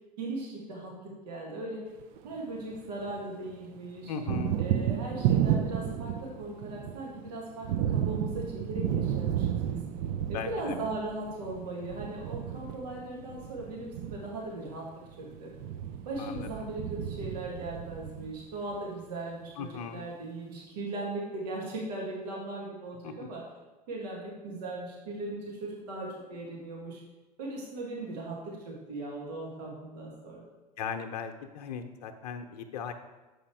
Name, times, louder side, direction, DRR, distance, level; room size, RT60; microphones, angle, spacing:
voice 1, 0.2-1.8 2.2-4.1 4.6-9.8 10.3-14.9 15.2-15.5 16.0-23.4 23.9-27.0 27.4-30.4, right 2 dB, 75° right, -3 dB, 1.7 m, -38 dB
Thunder, 2.0-3.2 3.5-18.8, right 10 dB, 60° right, 0.5 m, -32 dB
voice 2, 4.1-4.6 10.3-10.8 16.2-16.5 19.6-20.0 23.0-23.3 30.8-32.9, left 7 dB, 70° left, 6 dB, 0.7 m, -37 dB
6.8 x 5.0 x 4.6 m, 1.1 s
hypercardioid pair, 80°, 21 cm